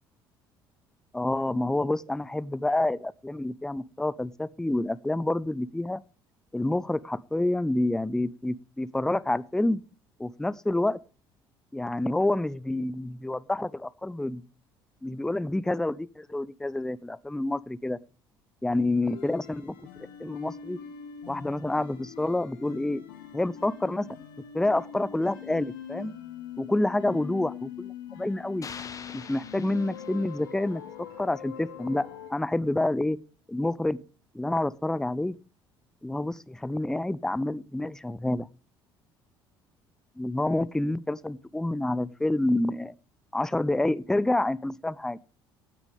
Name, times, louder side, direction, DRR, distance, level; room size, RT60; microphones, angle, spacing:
voice 1, 1.1-6.0 6.5-9.8 10.2-11.0 11.7-14.4 15.0-18.0 18.6-19.7 20.2-20.8 21.3-23.0 23.3-24.1 24.5-26.1 26.6-28.7 29.1-30.8 31.2-33.2 33.5-34.0 34.3-35.4 36.0-38.5 40.2-42.9 43.3-45.2, left 2 dB, 5° left, 0.5 m, -28 dB
sound 1, 19.0-32.3, left 9 dB, 65° left, 1.9 m, -43 dB
sound 2, 28.6-30.8, left 5 dB, 25° left, 1.4 m, -44 dB
16.0 x 9.7 x 3.5 m
figure-of-eight pair, 55°, 12 cm